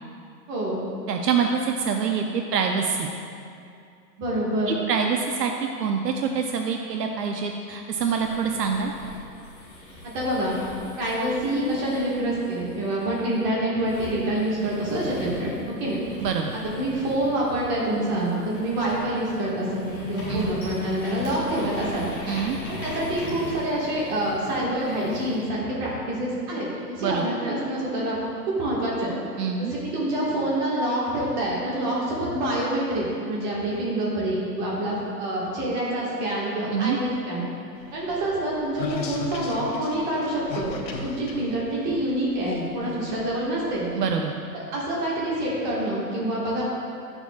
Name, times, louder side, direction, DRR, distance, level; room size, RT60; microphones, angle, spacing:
voice 1, 0.5-0.8 4.2-4.7 10.1-10.6 11.0-16.0 16.7-22.1 22.7-28.2 28.5-29.1 29.7-37.5 37.9-43.9 44.5-46.6, right 1 dB, 25° right, -5 dB, 1.7 m, -26 dB
voice 2, 1.1-3.1 4.7-8.9 16.2-16.5 20.3-20.5 22.3-22.6 27.0-27.3 29.4-29.7 36.7-37.0 43.9-44.3, right 6 dB, 70° right, 3 dB, 0.7 m, -25 dB
sound 1, 8.0-13.4 13.8-25.5, left 1 dB, 10° left, 0.8 m, -40 dB
sound 2, 37.8-44.1, left 5 dB, 85° left, 1.1 m, -37 dB
10.5 x 6.9 x 2.3 m, 2.4 s
hypercardioid pair, 160°, 50 cm